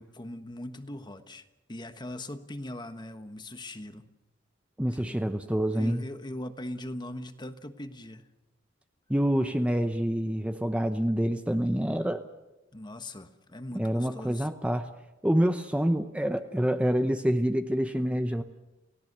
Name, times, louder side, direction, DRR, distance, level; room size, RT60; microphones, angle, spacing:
voice 1, 0.0-4.0 5.0-8.3 12.7-14.5, left 1 dB, 25° left, 9 dB, 1.3 m, -41 dB
voice 2, 4.8-6.0 9.1-12.2 13.7-14.9 15.2-18.4, equal, 5° right, 7 dB, 0.8 m, -27 dB
29.5 x 17.0 x 6.8 m, 1.0 s
head